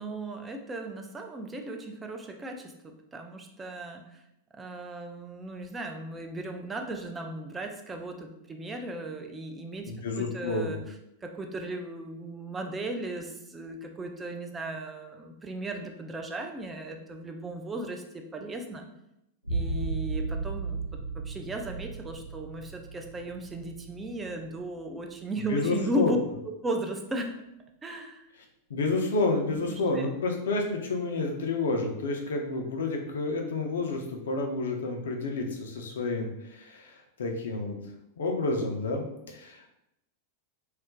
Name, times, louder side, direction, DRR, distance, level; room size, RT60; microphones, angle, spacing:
voice 1, 0.0-2.7 3.1-4.2 4.5-10.9 11.2-18.9 19.5-20.8 21.3-26.2 26.6-27.3 27.8-28.3 29.5-30.1, right 1 dB, 15° right, 3 dB, 0.4 m, -36 dB
voice 2, 9.9-10.8 25.5-26.1 28.7-37.8 38.2-39.7, left 3 dB, 65° left, 2 dB, 0.5 m, -30 dB
sound 1, 19.4-24.9 25.4-26.0, right 3 dB, 90° right, 0.7 m, -35 dB
2.3 x 2.1 x 3.7 m, 0.83 s
figure-of-eight pair, 90°, 0 cm